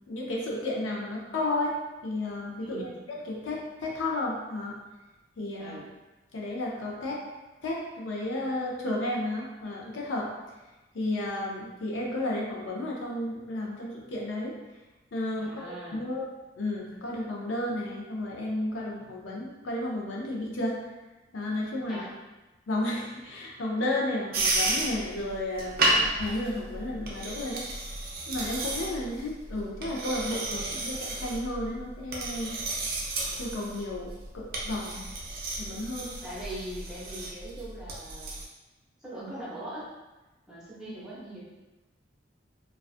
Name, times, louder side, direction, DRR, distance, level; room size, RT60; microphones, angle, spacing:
voice 1, 0.1-2.9 3.2-4.8 5.4-5.8 6.3-7.2 7.6-10.3 10.9-14.5 15.1-15.7 15.9-16.2 16.6-20.8 21.3-22.1 22.7-27.6 28.3-32.6 33.4-35.1 35.6-36.2 40.8-40.9, left 1 dB, 75° left, -2 dB, 0.5 m, -32 dB
voice 2, 2.6-3.0 5.6-5.9 15.4-16.1 21.9-22.1 36.2-38.3 39.0-39.9 40.5-41.4, right 1 dB, 5° right, -10 dB, 0.7 m, -41 dB
sound 1, 24.3-38.4, right 2 dB, 50° right, 0.4 m, -32 dB
2.3 x 2.3 x 2.4 m, 1.1 s
head